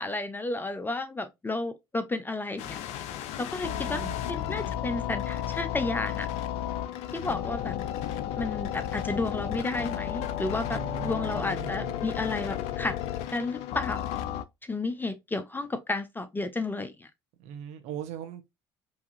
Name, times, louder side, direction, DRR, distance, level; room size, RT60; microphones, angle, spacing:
voice 1, 0.0-2.8 3.4-6.3 7.1-7.8 8.4-13.0 13.3-14.1 14.6-17.1, left 2 dB, 15° left, 0.6 m, -32 dB
sound 1, 2.6-14.4, left 11 dB, 60° left, 0.5 m, -33 dB
voice 2, 3.7-4.2 10.7-12.0 17.4-18.4, right 8 dB, 60° right, 0.8 m, -39 dB
4.7 x 2.7 x 2.6 m
figure-of-eight pair, 55°, 13 cm